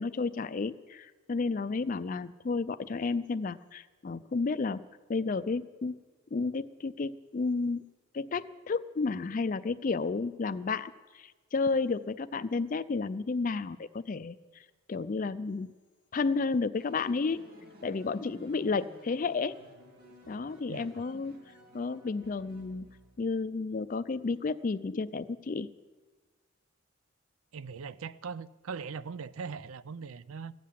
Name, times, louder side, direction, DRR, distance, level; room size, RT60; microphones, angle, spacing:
voice 1, 0.0-4.8 5.1-6.0 6.3-7.8 8.1-14.4 14.9-15.7 16.1-17.5 17.8-19.6 20.3-21.4 21.7-22.9 23.2-25.7, left 4 dB, 40° left, 13 dB, 0.4 m, -32 dB
sound 1, 16.7-23.4, equal, 45° right, 3.0 m, -54 dB
voice 2, 20.7-21.0 27.5-30.5, right 5 dB, 80° right, 17 dB, 0.5 m, -40 dB
16.0 x 7.5 x 10.0 m, 1.3 s
head